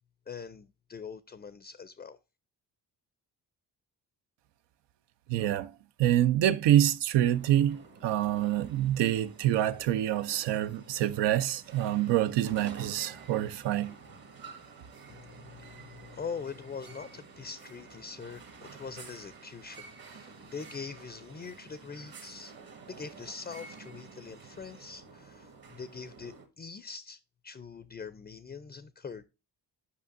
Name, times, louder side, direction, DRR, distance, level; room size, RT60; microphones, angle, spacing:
voice 1, 0.3-2.2 15.1-22.5 22.9-29.2, left 5 dB, 25° left, 0.4 m, -43 dB
voice 2, 5.3-5.7 6.0-14.0, right 12 dB, 80° right, 0.5 m, -26 dB
sound 1, 7.3-26.5, right 4 dB, 55° right, 1.4 m, -50 dB
8.4 x 5.2 x 2.6 m
supercardioid pair, 60°, 41 cm